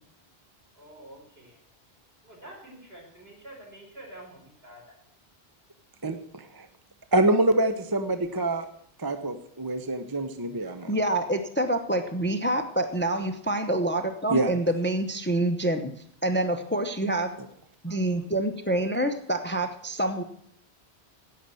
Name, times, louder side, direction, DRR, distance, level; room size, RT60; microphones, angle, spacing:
voice 1, 0.7-1.6 2.2-4.8 17.8-18.2, right 1 dB, 70° right, -2 dB, 5.1 m, -48 dB
voice 2, 6.0-6.7 7.1-8.7 9.0-11.0 14.3-14.5, right 2 dB, 20° right, 8 dB, 0.8 m, -26 dB
voice 3, 10.9-15.9 16.2-17.3 17.8-20.2, right 1 dB, 10° left, 8 dB, 0.8 m, -27 dB
10.5 x 8.5 x 7.7 m, 0.68 s
omnidirectional pair, 1.1 m